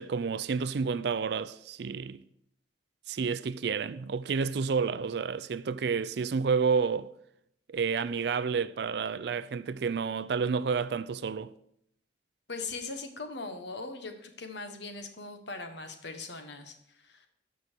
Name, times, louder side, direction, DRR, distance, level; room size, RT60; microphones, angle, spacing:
voice 1, 0.0-2.2 3.1-7.1 7.7-11.5, right 5 dB, 60° right, 0.4 m, -30 dB
voice 2, 12.5-17.3, left 3 dB, 70° left, 1.2 m, -40 dB
13.0 x 5.4 x 4.5 m
head